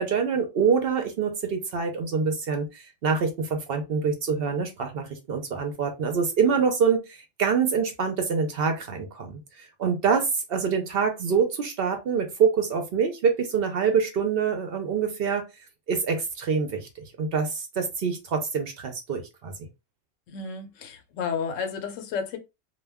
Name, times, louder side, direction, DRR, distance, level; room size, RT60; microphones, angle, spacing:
voice 1, 0.0-15.4 15.9-19.7, right 6 dB, 60° right, 0.7 m, -25 dB
voice 2, 20.3-22.4, left 6 dB, 85° left, 1.0 m, -32 dB
2.2 x 2.2 x 3.4 m
omnidirectional pair, 1.3 m